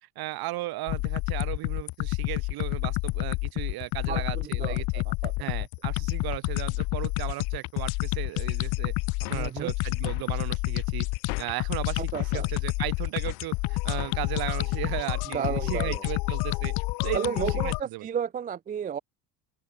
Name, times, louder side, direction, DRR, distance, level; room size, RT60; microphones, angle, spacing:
voice 1, 0.2-5.0 5.4-8.9 9.2-11.1 11.4-16.7 17.0-18.1, right 18 dB, 55° right, 2.0 m, -35 dB
sound 1, 0.9-17.8, left 24 dB, 60° left, 0.6 m, -29 dB
voice 2, 4.1-5.3 9.3-9.7 12.0-12.5 15.3-16.0 17.1-19.0, right 8 dB, 20° right, 0.4 m, -33 dB
sound 2, 9.2-9.6 10.1-10.3 11.3-11.7 12.1-12.4 13.3-13.5 14.0-14.3, left 35 dB, 80° left, 2.0 m, -41 dB
open air
cardioid pair, 135°, 43 cm